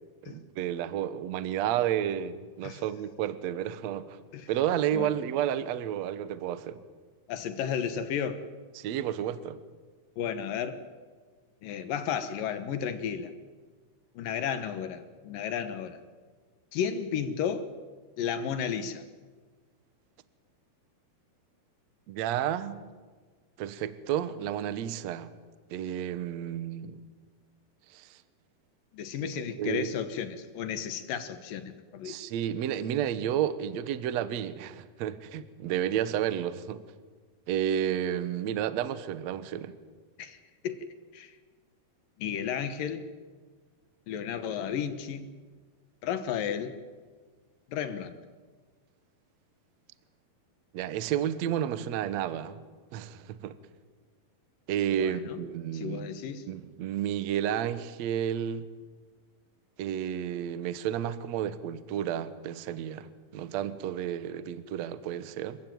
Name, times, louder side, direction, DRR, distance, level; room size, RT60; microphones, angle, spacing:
voice 1, 0.3-4.2 4.5-6.8 8.8-9.6 22.1-22.8 23.6-25.3 25.7-27.0 27.9-28.2 29.3-29.9 32.0-36.8 37.5-39.7 50.7-52.6 52.9-53.5 54.7-56.1 56.5-58.6 59.8-65.6, right 10 dB, 80° right, 13 dB, 1.5 m, -31 dB
voice 2, 7.3-8.4 10.2-10.8 11.6-13.3 14.1-16.0 16.7-17.7 18.2-19.0 28.9-32.2 40.2-40.4 40.6-40.9 41.1-41.4 42.2-43.0 44.1-45.3 46.0-46.7 47.7-48.2 55.0-55.4 55.7-56.4, left 8 dB, 65° left, 10 dB, 2.6 m, -33 dB
26.5 x 15.0 x 9.3 m, 1.5 s
omnidirectional pair, 4.7 m